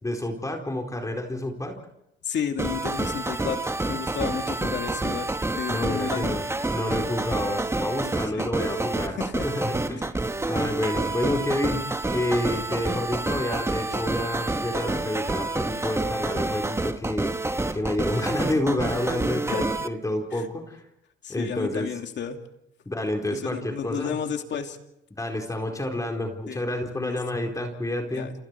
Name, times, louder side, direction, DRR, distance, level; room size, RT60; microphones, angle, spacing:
voice 1, 0.0-1.8 5.7-6.4 6.7-10.1 10.5-17.4 17.7-20.8 21.3-21.9 22.9-24.2 25.2-28.3, left 1 dB, 15° left, 2 dB, 4.4 m, -29 dB
voice 2, 2.2-6.4 8.3-8.5 9.2-9.5 19.5-19.7 20.3-20.5 21.2-22.4 23.3-24.8 26.5-26.6 27.0-27.2 28.1-28.3, left 7 dB, 65° left, 5 dB, 2.8 m, -32 dB
sound 1, 2.6-19.9, right 2 dB, 15° right, 1.2 m, -28 dB
29.5 x 27.5 x 4.7 m, 0.83 s
cardioid pair, 90°, 20 cm